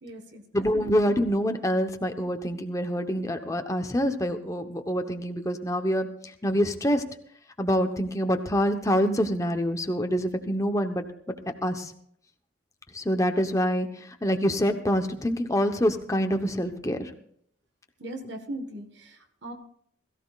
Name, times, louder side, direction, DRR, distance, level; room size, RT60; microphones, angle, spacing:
voice 1, 0.0-0.4 0.7-0.9 18.0-19.5, right 1 dB, 60° right, 5 dB, 1.4 m, -38 dB
voice 2, 0.5-7.0 7.6-11.0 11.6-11.9 12.9-17.1, equal, 15° left, 6 dB, 1.0 m, -26 dB
21.0 x 14.5 x 2.4 m, 0.65 s
head